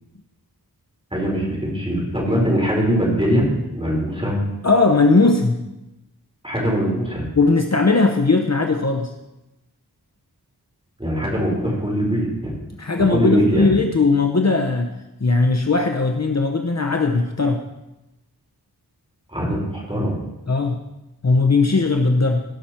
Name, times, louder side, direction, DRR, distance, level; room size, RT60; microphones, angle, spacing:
voice 1, 1.1-3.4 3.7-4.4 6.4-7.2 11.0-12.5 13.1-13.7 19.3-20.2, equal, 15° right, -3 dB, 4.4 m, -21 dB
voice 2, 4.6-5.6 7.3-9.1 12.8-14.9 15.2-17.6 20.5-20.8 21.2-22.4, left 3 dB, 45° left, 4 dB, 0.9 m, -18 dB
18.0 x 6.0 x 4.4 m, 0.96 s
wide cardioid pair, 50°, 38 cm